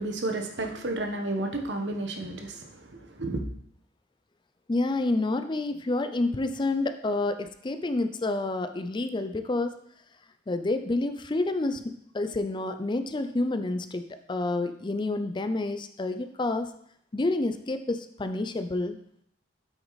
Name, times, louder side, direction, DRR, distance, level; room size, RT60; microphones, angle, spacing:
voice 1, 0.0-3.4, right 2 dB, 70° right, 4 dB, 1.1 m, -32 dB
voice 2, 4.7-9.8 10.5-11.8 12.1-16.7 17.1-19.0, left 2 dB, 25° left, 9 dB, 0.5 m, -29 dB
8.1 x 6.3 x 4.0 m, 0.69 s
head